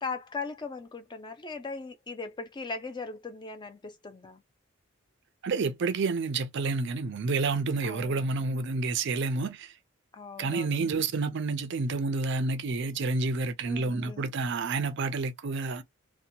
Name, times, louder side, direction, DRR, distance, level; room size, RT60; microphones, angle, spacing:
voice 1, 0.0-4.4 7.8-8.3 10.1-10.8 13.6-14.3, left 4 dB, 20° left, 0.4 m, -39 dB
voice 2, 5.4-9.7 10.4-15.8, right 3 dB, 50° right, 0.4 m, -29 dB
2.8 x 2.1 x 2.5 m
head